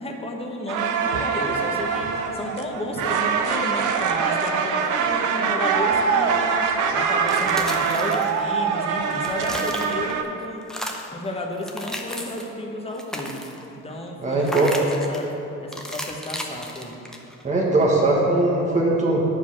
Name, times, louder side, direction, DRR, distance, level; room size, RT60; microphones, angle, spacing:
voice 1, 0.0-6.4 6.9-10.6 11.1-13.4 13.8-14.5 15.1-15.3 15.6-17.0, left 1 dB, 20° left, 1 dB, 1.1 m, -32 dB
sound 1, 0.7-10.2, right 6 dB, 85° right, 0.6 m, -23 dB
sound 2, 7.1-8.7 9.0-10.3 10.6-11.2 11.6-12.5 12.9-13.7 14.4-15.3 15.7-17.4, equal, ahead, 0.8 m, -34 dB
voice 2, 14.2-14.7 17.4-19.2, right 2 dB, 25° right, -4 dB, 1.3 m, -20 dB
8.0 x 4.9 x 6.0 m, 2.9 s
cardioid pair, 90°, 30 cm